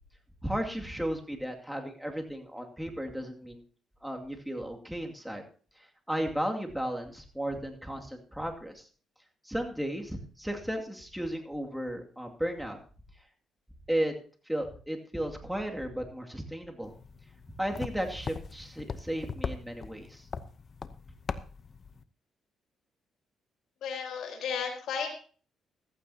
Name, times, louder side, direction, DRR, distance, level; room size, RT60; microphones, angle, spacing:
voice 1, 0.4-3.6 4.0-5.4 5.8-8.9 9.4-12.8 13.9-14.1 14.5-16.9 17.6-20.3, equal, 5° right, 2 dB, 2.4 m, -34 dB
sound 1, 16.8-22.0, left 5 dB, 45° left, 0.8 m, -40 dB
voice 2, 23.8-25.1, left 6 dB, 75° left, 2 dB, 4.2 m, -33 dB
15.0 x 14.5 x 2.9 m, 0.41 s
cardioid pair, 90°, 0 cm